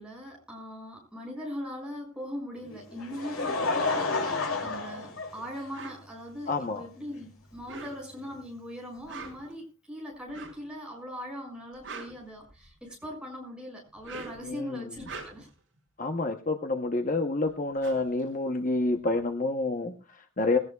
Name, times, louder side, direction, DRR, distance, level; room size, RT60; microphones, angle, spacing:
voice 1, 0.0-15.5, equal, 5° right, -1 dB, 6.4 m, -40 dB
Laughter, 2.7-5.9 6.7-6.8 8.3-8.4, left 3 dB, 70° left, 2.8 m, -30 dB
sound 1, 5.7-6.0 7.5-8.2 8.9-9.5 10.3-10.7 11.6-12.8 13.9-14.5 14.9-15.6 17.1-17.2 17.5-19.2, right 4 dB, 60° right, 6.5 m, -44 dB
voice 2, 6.5-6.8 14.5-14.9 16.0-20.6, left 2 dB, 35° left, 6 dB, 0.8 m, -28 dB
20.5 x 17.5 x 2.3 m, 0.33 s
head